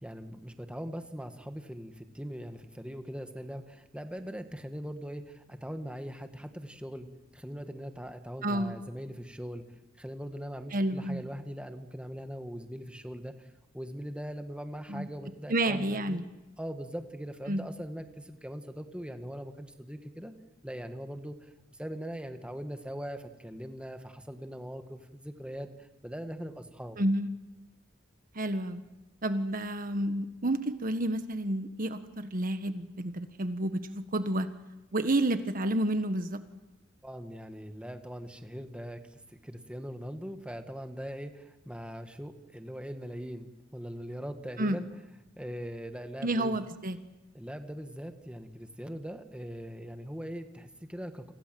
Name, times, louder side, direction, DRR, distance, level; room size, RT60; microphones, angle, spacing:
voice 1, 0.0-7.1 7.3-9.6 10.0-13.5 13.7-16.2 16.6-20.3 20.6-27.0 37.0-44.9 45.4-46.6 47.3-51.3, equal, 5° right, 7 dB, 1.7 m, -41 dB
voice 2, 8.4-8.7 10.7-11.2 14.9-15.1 15.5-16.2 17.5-17.6 27.0-27.3 28.3-28.8 29.2-34.5 34.9-36.4 44.6-44.8 46.2-47.0, right 1 dB, 45° right, 9 dB, 1.5 m, -30 dB
29.5 x 25.0 x 7.8 m, 0.99 s
head